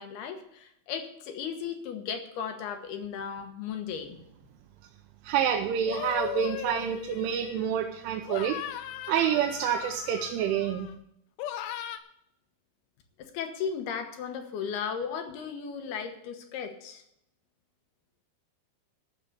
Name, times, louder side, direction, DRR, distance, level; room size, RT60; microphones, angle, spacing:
voice 1, 0.0-4.2 13.2-17.0, left 7 dB, 70° left, 6 dB, 2.8 m, -36 dB
voice 2, 5.2-8.6 9.1-10.9, right 9 dB, 90° right, 3 dB, 3.3 m, -28 dB
sound 1, 5.9-7.8 8.3-10.9 11.4-12.0, left 11 dB, 85° left, 3.3 m, -38 dB
13.5 x 6.6 x 8.0 m, 0.76 s
omnidirectional pair, 5.4 m